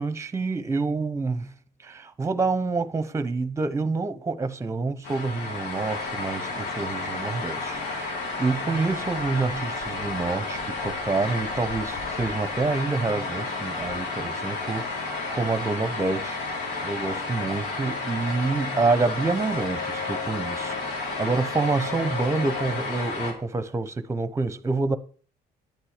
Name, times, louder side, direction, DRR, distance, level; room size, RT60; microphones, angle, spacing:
voice 1, 0.0-1.5 1.8-16.4 16.8-25.0, right 3 dB, 15° right, 0.8 m, -27 dB
sound 1, 5.0-23.3, left 3 dB, 90° left, 3.4 m, -31 dB
10.5 x 8.9 x 5.0 m
cardioid pair, 110°, 17 cm